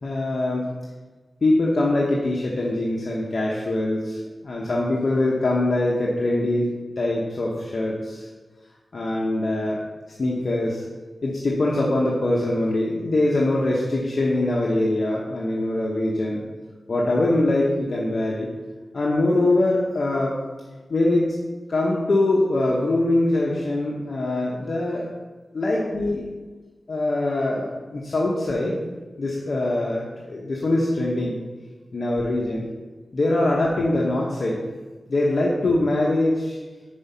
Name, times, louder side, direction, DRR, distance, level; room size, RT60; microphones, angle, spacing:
voice 1, 0.0-0.7 1.4-6.7 7.0-8.3 8.9-9.8 10.2-10.8 11.2-16.4 16.9-18.5 18.9-20.4 20.9-21.3 21.7-25.1 25.5-26.3 26.9-28.9 29.2-31.4 31.9-32.7 33.1-34.6 35.1-36.6, left 2 dB, 60° left, -4 dB, 0.9 m, -23 dB
5.4 x 5.0 x 5.5 m, 1.3 s
wide cardioid pair, 80°, 0 cm